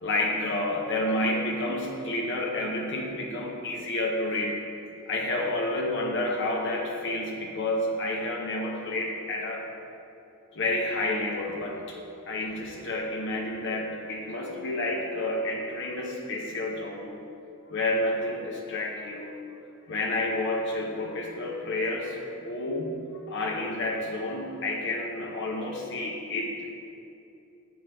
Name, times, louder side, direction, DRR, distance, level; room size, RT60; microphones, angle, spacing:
voice 1, 0.0-4.6 5.1-9.7 10.5-12.0 12.2-17.1 17.7-19.3 19.9-22.2 22.4-23.0 23.3-26.7, left 2 dB, 55° left, -1 dB, 0.8 m, -30 dB
7.7 x 6.4 x 4.6 m, 2.7 s
head